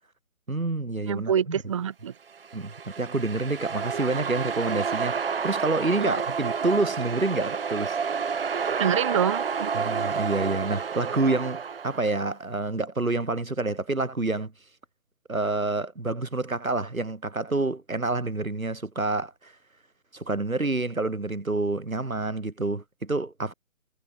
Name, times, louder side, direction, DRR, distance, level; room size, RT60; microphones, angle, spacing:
voice 1, 0.5-1.3 2.5-8.0 9.7-14.5 15.3-19.5 20.1-23.5, right 2 dB, 85° right, 6.2 m, -28 dB
voice 2, 1.0-2.1 6.0-6.2 8.8-9.7, right 8 dB, 25° right, 1.4 m, -26 dB
sound 1, 2.4-12.2, right 6 dB, 45° right, 2.7 m, -30 dB
figure-of-eight pair, 155°, 41 cm